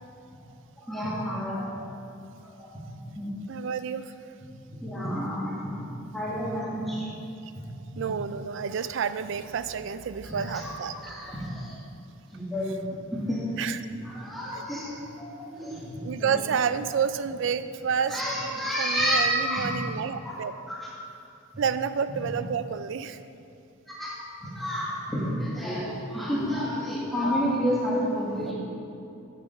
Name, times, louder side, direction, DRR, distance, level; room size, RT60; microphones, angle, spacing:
voice 1, 0.8-1.8 2.4-2.7 3.0-3.3 4.8-5.7 6.1-7.1 7.9-8.0 10.2-11.7 12.3-12.7 13.1-13.4 14.0-15.8 16.1-16.3 18.1-19.7 20.2-20.4 20.7-20.9 24.0-24.2 24.4-28.5, equal, ahead, -8 dB, 1.6 m, -30 dB
voice 2, 3.5-4.1 8.0-10.9 13.6-13.8 14.5-14.6 16.0-20.5 21.6-23.2 27.2-27.4 28.5-28.6, right 6 dB, 60° right, 12 dB, 0.3 m, -29 dB
7.6 x 6.4 x 5.4 m, 2.7 s
head